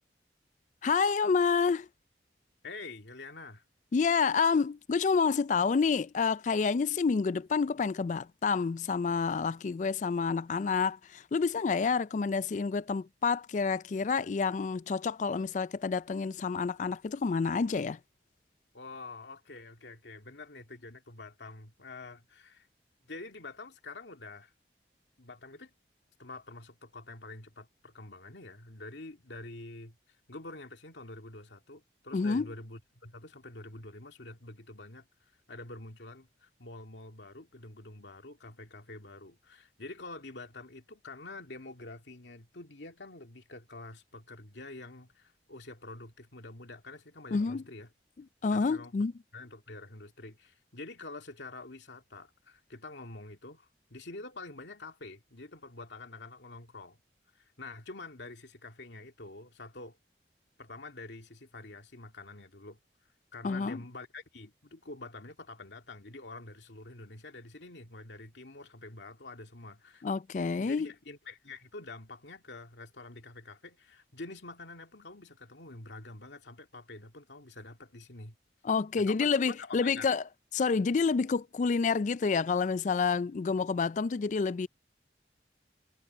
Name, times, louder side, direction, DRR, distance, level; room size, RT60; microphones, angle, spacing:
voice 1, 0.8-1.9 3.9-18.0 32.1-32.5 47.3-47.6 48.4-49.1 63.4-63.8 70.0-70.9 78.6-80.2 80.5-84.7, left 5 dB, 45° left, 0.3 m, -28 dB
voice 2, 2.6-3.6 18.7-22.7 23.0-24.5 25.2-25.7 26.2-30.0 30.3-35.1 35.5-47.9 48.5-48.9 49.3-57.0 57.3-60.0 60.6-62.8 63.3-70.0 70.6-78.4 79.0-80.1, left 2 dB, 80° left, 2.4 m, -47 dB
head